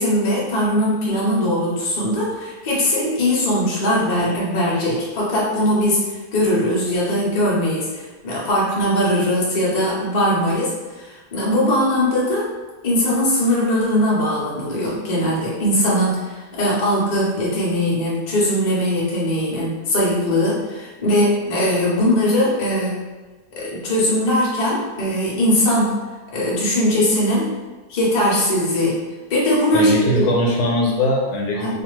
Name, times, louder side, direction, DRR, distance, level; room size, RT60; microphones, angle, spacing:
voice 1, 0.0-12.5 12.8-22.9 23.6-26.0 26.3-27.5 27.9-29.0 29.3-30.3 31.6-31.7, left 1 dB, 50° left, -5 dB, 0.5 m, -20 dB
voice 2, 29.7-31.8, equal, 80° left, -1 dB, 1.2 m, -20 dB
2.5 x 2.4 x 3.0 m, 1.3 s
omnidirectional pair, 1.7 m